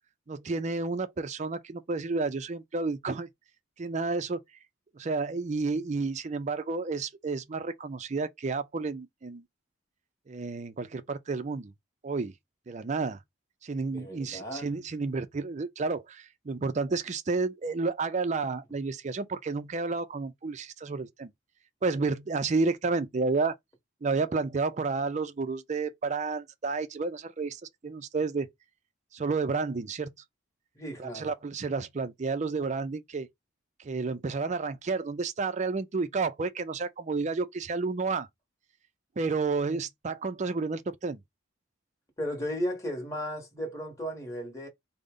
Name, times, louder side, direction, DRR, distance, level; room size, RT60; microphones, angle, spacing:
voice 1, 0.3-3.3 3.8-4.4 5.0-9.4 10.3-11.7 12.0-12.3 12.7-13.2 13.6-21.3 21.8-23.6 24.0-28.5 29.1-30.1 31.0-33.3 33.8-38.3 39.2-41.2, right 4 dB, 35° right, 0.4 m, -31 dB
voice 2, 13.9-14.7 30.7-31.3 42.2-44.7, equal, 15° left, 1.1 m, -35 dB
3.8 x 2.1 x 3.7 m
head